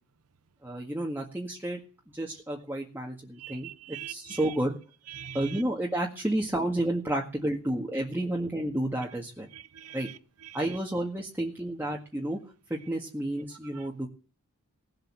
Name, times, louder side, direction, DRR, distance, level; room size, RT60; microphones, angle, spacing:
voice 1, 0.6-1.8 2.1-4.8 5.3-9.5 9.9-10.1 10.5-12.4 12.7-14.1, right 1 dB, 10° right, 1.8 m, -31 dB
voice 2, 3.4-4.6 5.1-5.6 9.5-10.8 13.7-13.9, right 11 dB, 75° right, 0.7 m, -43 dB
18.5 x 7.8 x 7.5 m
head